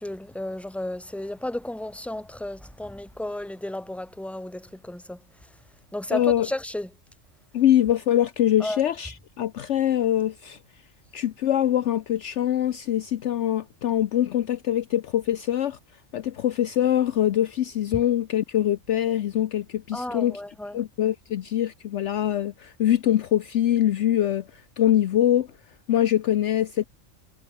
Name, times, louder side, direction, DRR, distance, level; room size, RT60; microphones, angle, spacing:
voice 1, 0.0-5.5 5.9-6.9 8.6-8.8 19.9-20.8, left 1 dB, ahead, 1.8 m, -33 dB
voice 2, 6.1-6.5 7.5-10.6 11.1-15.8 16.1-20.4 20.7-24.5 24.8-25.5 25.9-26.8, left 11 dB, 65° left, 0.9 m, -23 dB
omnidirectional pair, 1.4 m